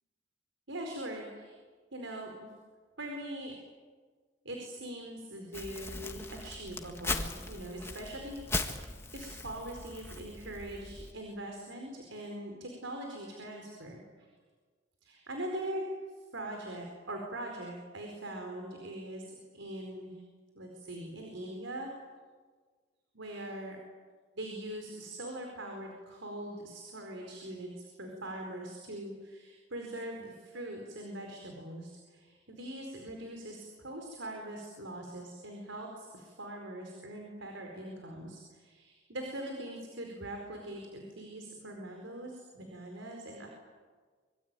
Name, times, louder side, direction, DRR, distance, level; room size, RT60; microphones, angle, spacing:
voice 1, 0.7-1.6 1.9-2.5 3.0-3.5 4.4-14.0 15.0-15.9 16.3-20.2 20.5-21.9 23.1-23.8 24.3-43.5, right 1 dB, 75° right, 2 dB, 4.7 m, -42 dB
Crumpling crinkling, 5.5-11.1, left 2 dB, 15° left, 1.7 m, -39 dB
25.5 x 24.0 x 9.1 m, 1.5 s
head